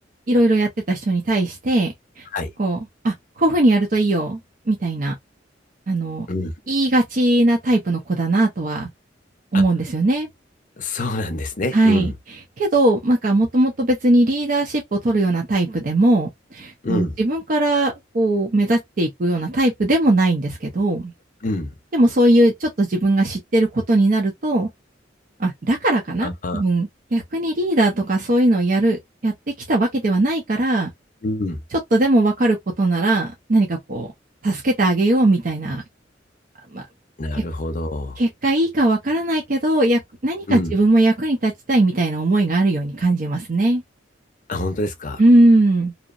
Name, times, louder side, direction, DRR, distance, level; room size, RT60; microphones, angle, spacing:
voice 1, 0.3-2.2 2.6-2.8 3.0-4.4 4.7-5.1 5.9-6.3 6.7-8.9 9.5-10.3 11.7-12.1 12.6-21.1 21.9-24.7 25.4-29.3 29.7-30.9 31.9-34.1 34.4-35.8 36.7-36.8 38.2-43.8 45.2-45.9, right 1 dB, 45° right, 0.5 m, -19 dB
voice 2, 10.8-12.1 16.8-17.1 21.4-21.7 26.2-26.6 31.2-31.6 37.2-38.2 40.5-40.7 44.5-45.2, left 2 dB, 45° left, 0.6 m, -26 dB
2.7 x 2.0 x 2.3 m
head